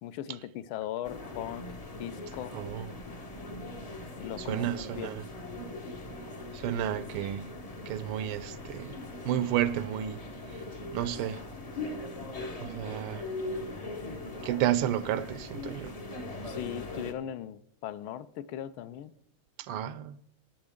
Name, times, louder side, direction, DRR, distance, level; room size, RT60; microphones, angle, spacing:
voice 1, 0.0-1.7 2.0-2.6 4.2-4.7 4.9-5.1 16.4-19.1, left 11 dB, 80° left, 1.3 m, -38 dB
sound 1, 1.0-17.1, left 2 dB, 45° left, 0.4 m, -40 dB
voice 2, 2.5-2.9 4.5-5.2 6.5-7.5 7.9-9.0 9.2-10.2 10.9-11.4 12.6-13.2 14.4-15.9 19.6-20.1, right 11 dB, 80° right, 1.5 m, -31 dB
17.5 x 7.5 x 3.6 m
omnidirectional pair, 2.4 m